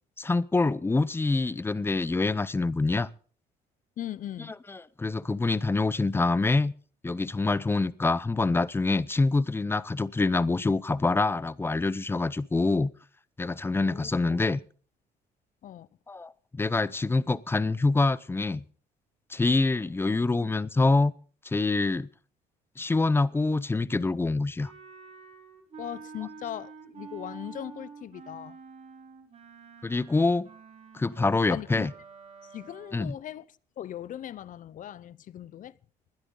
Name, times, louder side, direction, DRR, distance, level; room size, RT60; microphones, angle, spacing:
voice 1, 0.2-3.1 4.7-6.7 7.0-12.9 13.4-14.6 16.1-18.6 19.3-21.1 21.4-22.1 22.8-24.7 29.8-30.5 30.9-31.9 32.9-33.1, left 3 dB, 15° left, 0.7 m, -26 dB
voice 2, 4.0-4.6 13.9-14.1 15.6-15.9 25.8-28.6 31.2-31.9 32.5-33.5 33.8-35.7, left 11 dB, 50° left, 0.7 m, -39 dB
Wind instrument woodwind instrument, 24.6-33.2, right 5 dB, 40° right, 4.4 m, -48 dB
20.5 x 12.0 x 3.9 m
cardioid pair, 110°, 17 cm